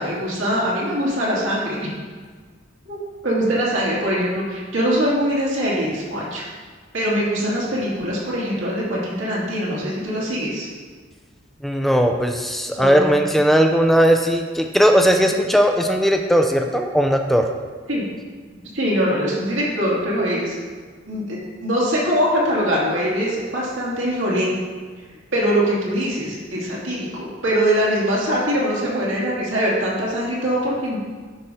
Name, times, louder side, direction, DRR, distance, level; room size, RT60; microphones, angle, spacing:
voice 1, 0.0-1.9 2.9-3.0 3.2-6.4 6.9-10.7 12.7-13.2 17.9-18.0 18.7-20.6 21.1-24.5 25.3-31.0, equal, 70° right, -6 dB, 2.5 m, -22 dB
voice 2, 11.6-17.5, equal, ahead, 4 dB, 0.4 m, -18 dB
10.5 x 5.2 x 4.3 m, 1.5 s
head